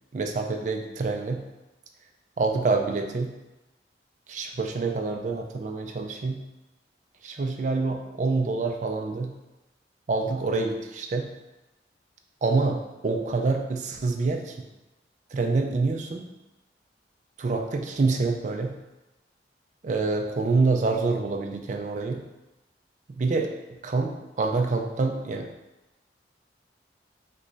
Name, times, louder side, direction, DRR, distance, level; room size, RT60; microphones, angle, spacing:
voice 1, 0.1-1.4 2.4-3.3 4.3-6.4 7.2-9.3 10.1-11.3 12.4-14.6 15.3-16.3 17.4-18.7 19.8-22.2 23.2-23.5 23.8-25.5, right 3 dB, 40° right, 4 dB, 0.3 m, -26 dB
3.0 x 2.3 x 3.8 m, 1.0 s
head